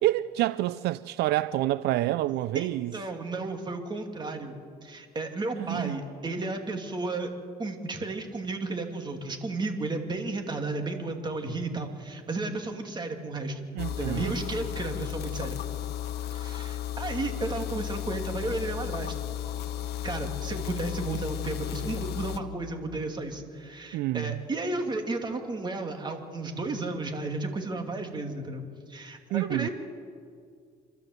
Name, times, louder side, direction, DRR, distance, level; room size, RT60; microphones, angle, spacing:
voice 1, 0.0-2.9 5.7-6.0 13.8-14.3 23.9-24.4 29.3-29.7, right 15 dB, 75° right, 0.4 m, -27 dB
voice 2, 2.5-7.3 7.6-13.6 13.9-15.6 16.3-19.3 20.0-28.6 28.9-29.7, right 2 dB, 25° right, 2.5 m, -33 dB
sound 1, 13.8-22.4, left 11 dB, 75° left, 1.0 m, -34 dB
26.5 x 13.0 x 7.9 m
cardioid pair, 110°, 17 cm